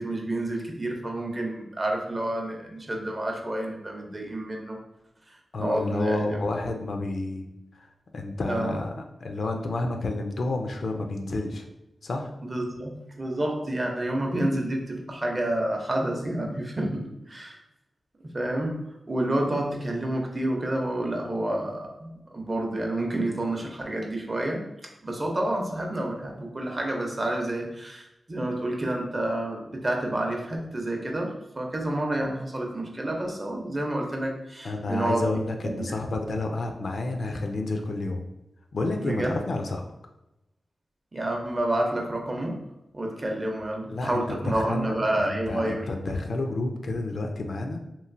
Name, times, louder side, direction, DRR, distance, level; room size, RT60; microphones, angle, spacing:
voice 1, 0.0-4.8 5.3-6.4 8.5-8.8 12.4-17.6 18.3-18.8 19.1-24.6 25.0-35.4 35.6-35.9 39.0-39.3 41.1-42.6 42.9-45.9, right 1 dB, 35° right, 1 dB, 0.6 m, -29 dB
voice 2, 5.5-7.5 7.7-7.9 8.1-11.7 12.0-12.3 34.6-38.2 38.7-39.8 43.9-47.8, left 2 dB, 70° left, 3 dB, 0.4 m, -30 dB
3.0 x 2.5 x 2.5 m, 0.90 s
wide cardioid pair, 85°, 0 cm